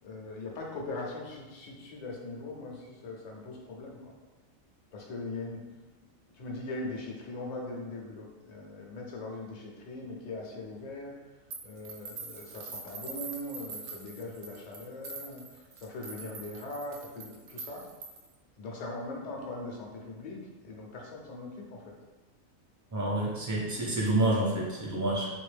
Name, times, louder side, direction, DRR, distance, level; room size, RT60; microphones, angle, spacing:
voice 1, 0.0-4.2 4.9-5.6 6.3-11.1 11.6-17.9 18.6-22.0, left 2 dB, 50° left, -1 dB, 0.5 m, -40 dB
sound 1, 11.5-18.3, right 4 dB, 65° right, 0.7 m, -44 dB
voice 2, 22.9-25.3, right 2 dB, 25° right, -5 dB, 0.4 m, -28 dB
3.4 x 2.6 x 3.3 m, 1.2 s
omnidirectional pair, 1.4 m